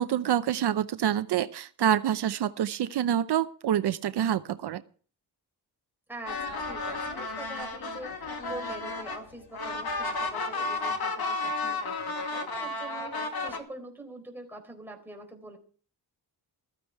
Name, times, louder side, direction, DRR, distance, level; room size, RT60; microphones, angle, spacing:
voice 1, 0.0-4.8, right 10 dB, 75° right, 11 dB, 0.7 m, -27 dB
voice 2, 6.1-15.6, right 2 dB, 5° right, 1 dB, 4.1 m, -44 dB
sound 1, 6.3-13.6, left 3 dB, 65° left, 2.2 m, -33 dB
15.0 x 13.5 x 4.7 m, 0.43 s
wide cardioid pair, 155°, 40 cm